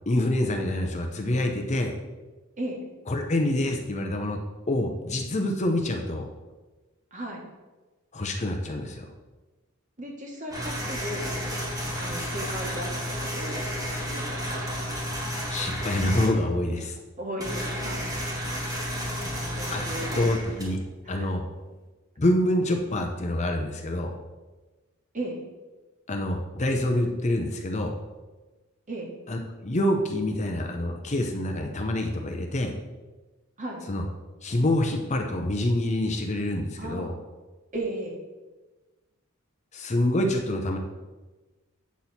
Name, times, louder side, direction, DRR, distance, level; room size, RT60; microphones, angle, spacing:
voice 1, 0.1-1.9 3.1-4.4 4.7-6.3 8.1-9.0 15.5-17.0 19.7-19.8 20.1-20.8 21.1-21.4 22.2-24.1 26.1-28.0 29.3-32.7 33.9-34.0 34.4-37.1 39.7-40.8, left 1 dB, 30° left, 3 dB, 0.7 m, -26 dB
voice 2, 7.1-7.4 10.0-11.6 11.9-14.9 17.2-18.1 19.1-20.3 21.0-21.3 25.1-25.4 28.9-29.1 33.6-33.8 36.8-37.1 37.7-38.2, right 1 dB, 35° right, 0 dB, 1.5 m, -36 dB
sound 1, 10.5-16.3 17.4-21.0, equal, 15° right, 1.7 m, -32 dB
8.4 x 6.1 x 4.2 m, 1.2 s
head